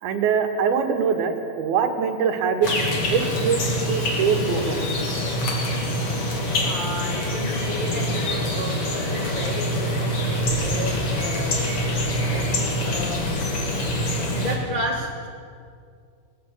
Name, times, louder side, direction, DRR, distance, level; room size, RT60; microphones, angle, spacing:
voice 1, 0.0-2.7 3.1-3.6 3.9-4.9 13.7-13.9, right 6 dB, 80° right, 6 dB, 3.6 m, -23 dB
sound 1, 2.6-14.6, left 1 dB, 40° left, 3.3 m, -25 dB
voice 2, 6.6-11.8 12.3-13.3 14.4-15.3, equal, 20° left, -1 dB, 1.5 m, -32 dB
20.0 x 18.5 x 8.4 m, 2.3 s
omnidirectional pair, 4.4 m